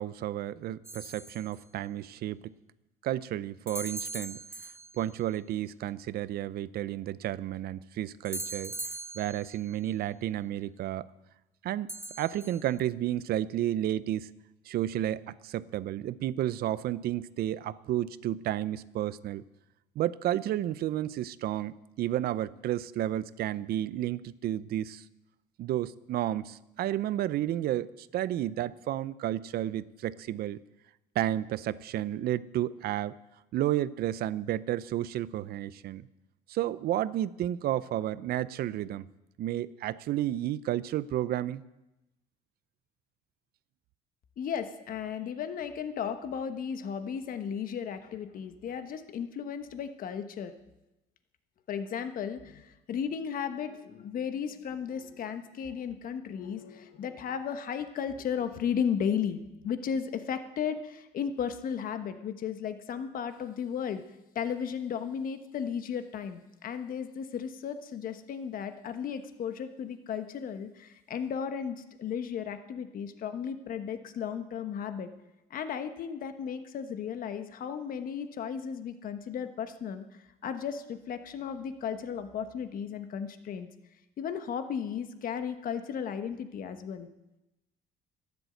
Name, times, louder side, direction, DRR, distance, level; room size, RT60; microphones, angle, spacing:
voice 1, 0.0-2.5 3.0-4.4 4.9-8.7 9.1-11.1 11.6-11.9 12.2-14.3 14.7-19.4 20.0-25.0 25.6-30.6 31.1-33.1 33.5-36.1 36.5-39.1 39.4-41.6, right 12 dB, 65° right, 17 dB, 0.6 m, -32 dB
sound 1, 0.8-1.6 3.7-5.2 8.2-9.8 11.9-12.8, right 2 dB, 15° right, 0.9 m, -40 dB
voice 2, 44.4-50.5 51.7-64.0 64.3-75.1 75.5-83.7 84.2-87.1, left 7 dB, 55° left, 9 dB, 1.2 m, -35 dB
12.5 x 10.5 x 7.8 m, 0.97 s
cardioid pair, 110°, 17 cm